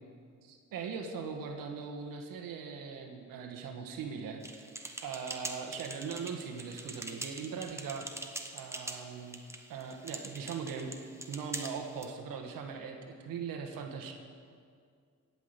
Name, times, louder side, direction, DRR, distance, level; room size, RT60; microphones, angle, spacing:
voice 1, 0.4-4.4 5.0-9.4 9.7-10.9 11.3-14.1, right 6 dB, 80° right, 3 dB, 1.4 m, -40 dB
sound 1, 4.4-12.1, right 1 dB, 10° right, 1.2 m, -44 dB
16.0 x 6.0 x 8.1 m, 2.2 s
cardioid pair, 75°, 33 cm